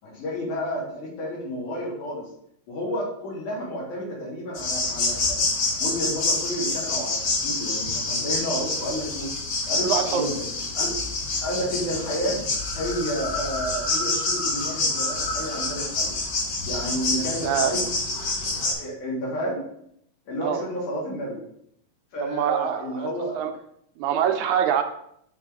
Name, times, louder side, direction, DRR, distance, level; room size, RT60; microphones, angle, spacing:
voice 1, 0.0-2.2 2.7-5.5 5.8-9.3 9.7-10.4 10.7-11.0 11.4-12.4 12.7-16.1 16.6-17.9 18.6-19.6 20.3-21.4 22.1-23.5, equal, 80° left, -5 dB, 3.3 m, -31 dB
sound 1, 4.5-18.7, left 2 dB, 55° left, 2.5 m, -27 dB
voice 2, 9.8-10.3 17.1-17.8 20.4-20.6 22.2-23.1 23.4-23.5 24.0-24.8, right 9 dB, 80° right, 6 dB, 2.0 m, -25 dB
6.3 x 3.8 x 4.8 m, 0.71 s
omnidirectional pair, 3.5 m